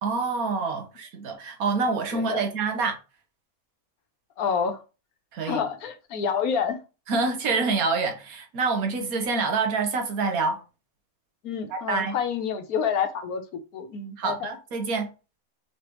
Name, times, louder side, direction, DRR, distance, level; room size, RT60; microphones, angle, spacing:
voice 1, 0.0-3.0 5.3-5.6 7.1-10.6 11.7-12.2 14.2-15.1, right 4 dB, 80° right, 1.4 m, -26 dB
voice 2, 2.1-2.4 4.4-4.8 5.4-6.8 9.0-9.1 11.4-14.6, left 7 dB, 80° left, 1.2 m, -28 dB
4.1 x 3.3 x 3.0 m
omnidirectional pair, 1.5 m